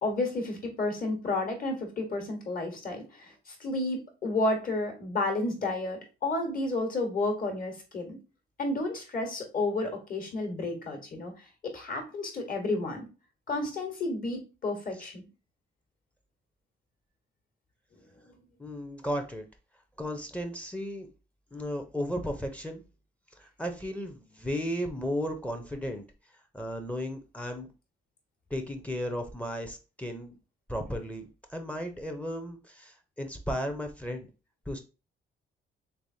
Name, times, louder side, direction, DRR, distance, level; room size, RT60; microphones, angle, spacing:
voice 1, 0.0-8.2 8.6-11.3 11.6-13.1 13.5-15.2, left 2 dB, 45° left, 3 dB, 1.3 m, -31 dB
voice 2, 18.6-19.4 20.0-21.1 21.5-22.8 23.4-26.0 26.5-27.7 28.5-30.3 30.7-31.2 31.5-34.3 34.7-34.8, equal, 5° left, 6 dB, 0.6 m, -34 dB
3.3 x 3.3 x 2.7 m, 0.31 s
cardioid pair, 90°, 20 cm